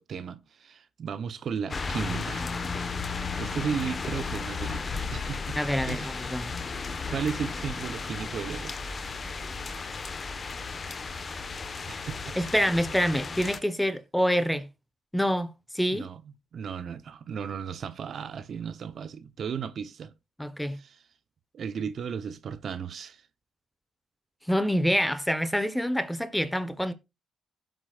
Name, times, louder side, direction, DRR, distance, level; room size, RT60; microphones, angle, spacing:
voice 1, 0.0-2.7 3.4-4.8 5.1-5.6 5.9-6.2 6.8-8.8 11.9-12.4 15.9-16.2 16.5-20.1 20.8-21.0 21.5-23.3, right 7 dB, 55° right, 1.0 m, -35 dB
sound 1, 1.7-13.6, left 4 dB, 35° left, 1.3 m, -34 dB
voice 2, 5.6-6.5 12.4-14.7 15.1-16.1 20.4-20.8 24.5-26.9, equal, 5° left, 1.3 m, -26 dB
16.0 x 7.7 x 2.5 m
cardioid pair, 90°, 0 cm